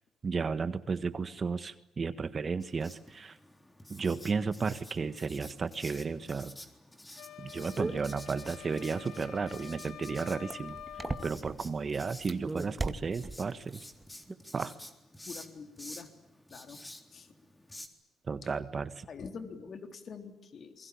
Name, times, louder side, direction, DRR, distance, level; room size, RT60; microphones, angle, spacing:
voice 1, 0.2-3.4 3.9-6.5 7.4-10.8 11.2-13.9 14.5-14.7 18.3-19.1, right 5 dB, 40° right, 12 dB, 1.6 m, -33 dB
Writing, 2.6-17.9, left 1 dB, 10° left, 3.9 m, -51 dB
sound 1, 7.2-11.4, left 10 dB, 85° left, 1.5 m, -47 dB
sound 2, 7.8-11.7 12.2-13.7 14.0-14.3, right 3 dB, 20° right, 2.0 m, -37 dB
voice 2, 15.3-16.1 16.5-16.8 17.1-17.3 18.4-18.5 19.1-20.9, left 5 dB, 50° left, 7 dB, 3.8 m, -45 dB
28.5 x 23.0 x 8.9 m, 0.87 s
cardioid pair, 90°, 0 cm